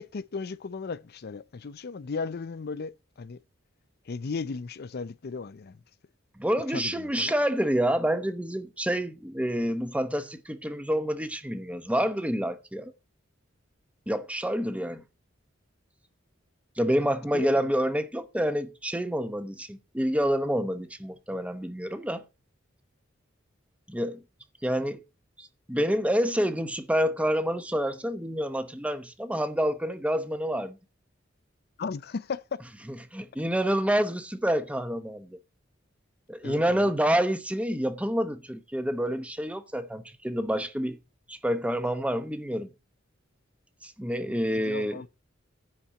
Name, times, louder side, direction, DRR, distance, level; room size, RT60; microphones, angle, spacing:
voice 1, 0.0-3.4 4.1-5.8 6.7-7.3 17.3-17.7 31.8-32.6 36.4-36.9 44.5-45.1, left 4 dB, 55° left, 0.5 m, -36 dB
voice 2, 6.4-12.9 14.1-15.0 16.8-22.2 23.9-24.2 24.6-25.0 25.4-30.8 33.1-35.4 36.3-41.0 41.3-42.7 43.8-45.0, equal, 5° right, 0.9 m, -28 dB
10.0 x 4.3 x 7.7 m
head